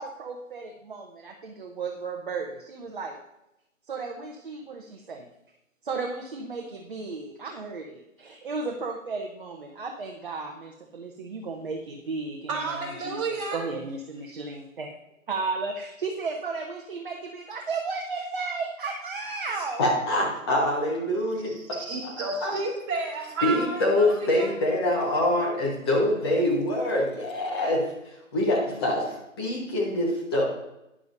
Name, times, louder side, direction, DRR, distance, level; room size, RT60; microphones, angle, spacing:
voice 1, 0.0-3.2 3.9-5.3 5.8-14.9 15.3-19.8, right 4 dB, 40° right, 1 dB, 0.9 m, -34 dB
voice 2, 12.5-13.6 21.4-24.5, right 3 dB, 25° right, -4 dB, 2.7 m, -31 dB
voice 3, 19.8-21.5 22.4-22.5 23.4-30.4, left 1 dB, 20° left, -3 dB, 1.2 m, -25 dB
12.5 x 9.7 x 2.6 m, 0.89 s
figure-of-eight pair, 155°, 41 cm